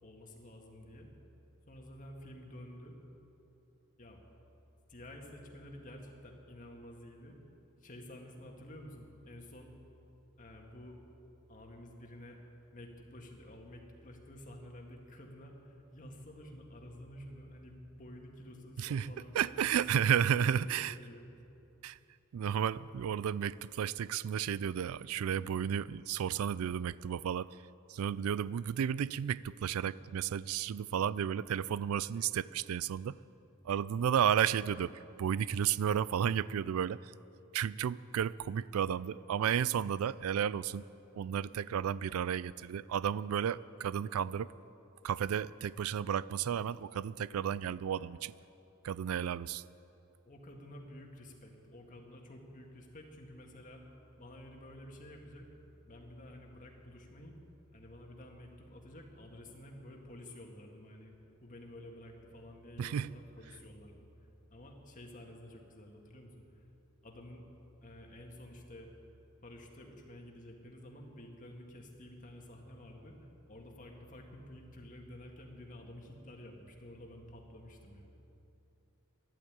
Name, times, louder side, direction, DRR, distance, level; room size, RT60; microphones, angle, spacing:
voice 1, 0.0-1.1 1.7-3.0 4.0-4.2 4.9-7.4 7.8-9.7 10.4-11.0 11.5-12.4 12.7-21.2 50.3-53.8 54.2-55.5 55.8-57.4 57.7-61.1 61.4-64.1 64.5-66.7 67.0-67.5 67.8-68.9 69.4-78.1, left 1 dB, 40° left, 1 dB, 1.8 m, -51 dB
voice 2, 18.8-20.9 21.8-22.0 22.3-27.6 27.9-33.2 33.6-37.1 37.5-40.9 41.1-44.5 45.0-48.3 48.8-49.6 62.8-63.2, right 8 dB, 90° right, 19 dB, 0.3 m, -33 dB
12.5 x 11.5 x 8.8 m, 2.9 s
head